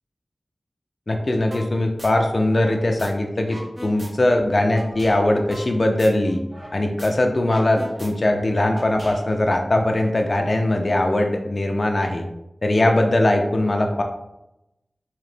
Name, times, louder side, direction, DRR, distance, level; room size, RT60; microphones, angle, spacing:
voice 1, 1.1-6.4 6.7-12.2 12.6-14.0, left 1 dB, 50° left, 3 dB, 0.5 m, -20 dB
sound 1, 1.5-1.7 2.0-3.1 3.4-6.7 7.0-7.1 7.4-9.5, equal, 30° right, 0.9 m, -38 dB
3.7 x 2.9 x 3.3 m, 0.90 s
cardioid pair, 45°, 0 cm